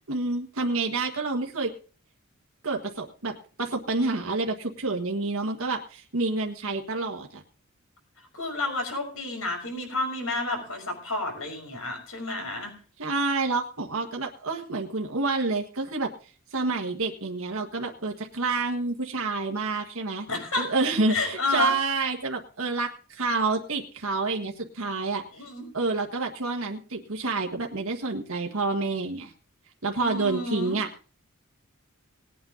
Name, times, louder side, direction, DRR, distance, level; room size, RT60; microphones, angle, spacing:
voice 1, 0.1-1.7 2.6-7.3 13.0-16.1 16.5-20.3 20.6-25.2 25.7-29.3 29.8-30.9, right 3 dB, 70° right, 2 dB, 1.6 m, -28 dB
voice 2, 8.3-12.7 20.3-20.7 21.1-21.7 25.3-25.6 30.0-30.8, left 2 dB, 70° left, 3 dB, 5.9 m, -30 dB
19.5 x 9.0 x 3.9 m, 0.37 s
head